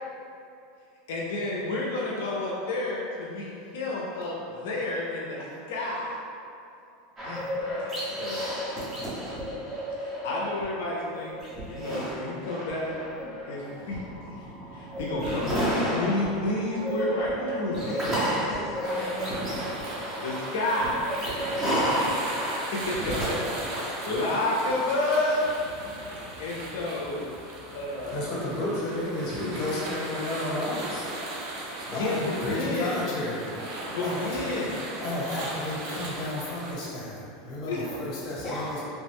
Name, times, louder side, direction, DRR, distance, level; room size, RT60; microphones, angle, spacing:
voice 1, 1.1-6.2 7.2-8.9 10.0-11.3 11.7-12.9 13.5-14.4 14.7-18.1 20.2-21.7 22.3-22.4 22.7-25.4 26.0-26.1 26.4-27.3 27.7-28.3 31.9-33.0 33.8-35.0 37.7-37.9, left 2 dB, 80° left, -4 dB, 0.4 m, -31 dB
sound 1, 7.2-10.6 11.0-24.7, equal, 20° right, 1.0 m, -31 dB
voice 2, 17.9-19.5 38.4-38.8, left 1 dB, 20° left, -8 dB, 0.7 m, -37 dB
sound 2, 18.8-36.7, right 1 dB, 60° right, 0.6 m, -37 dB
voice 3, 25.8-26.8 27.3-34.4 35.0-38.8, left 1 dB, 50° left, -6 dB, 1.0 m, -33 dB
3.1 x 2.1 x 3.4 m, 2.6 s
supercardioid pair, 130°, 0 cm